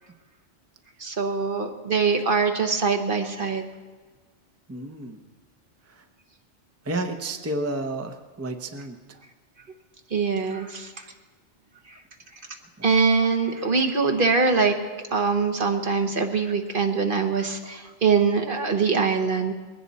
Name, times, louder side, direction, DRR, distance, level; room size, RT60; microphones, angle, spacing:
voice 1, 1.0-3.7 10.1-11.0 12.8-19.5, right 5 dB, 50° right, 5 dB, 1.3 m, -23 dB
voice 2, 4.7-5.2 6.0-6.1 6.8-9.0 12.8-13.0, right 2 dB, 15° right, 5 dB, 0.7 m, -31 dB
21.0 x 16.5 x 4.2 m, 1.4 s
omnidirectional pair, 1.2 m